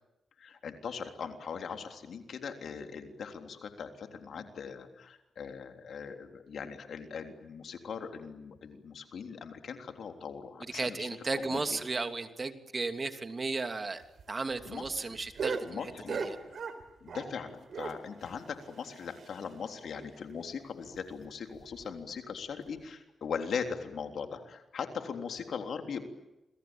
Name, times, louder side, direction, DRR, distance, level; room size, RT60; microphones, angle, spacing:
voice 1, 0.4-11.1 11.3-11.8 14.7-14.9 15.6-16.2 17.0-26.0, left 6 dB, 70° left, 5 dB, 3.5 m, -40 dB
voice 2, 10.7-14.0 14.3-16.4, right 3 dB, 40° right, 7 dB, 2.9 m, -35 dB
sound 1, 14.0-17.4 17.7-19.7 20.0-20.1 20.4-20.5 20.9-21.0 21.5-21.8 22.7-22.8, right 5 dB, 65° right, 4.2 m, -39 dB
29.0 x 22.5 x 9.1 m, 0.95 s
supercardioid pair, 50°, 0 cm